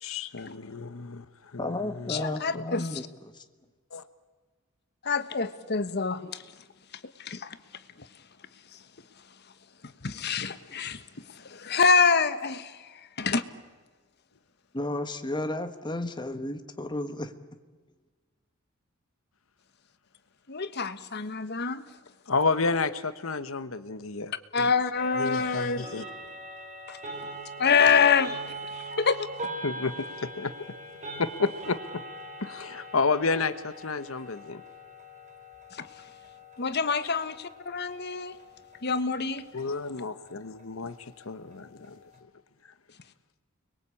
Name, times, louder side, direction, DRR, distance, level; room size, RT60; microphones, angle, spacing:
voice 1, 0.0-2.2 2.5-2.6 3.9-4.0 22.3-24.7 25.2-26.0 29.6-30.5 31.2-32.0 32.4-34.6 39.5-42.0, left 4 dB, 85° left, 12 dB, 1.1 m, -31 dB
voice 2, 1.6-3.4 14.7-17.3, left 1 dB, 20° left, 7 dB, 1.4 m, -33 dB
voice 3, 2.1-2.9 5.0-6.4 7.2-7.6 10.0-11.0 11.4-12.8 13.2-13.4 20.5-21.8 24.5-25.8 26.9-27.0 27.6-29.3 35.7-35.9 36.6-38.3 38.8-39.5, left 5 dB, 55° left, 12 dB, 1.3 m, -26 dB
sound 1, 25.0-42.2, right 1 dB, 35° right, 4.2 m, -43 dB
30.0 x 22.0 x 8.5 m, 1.4 s
head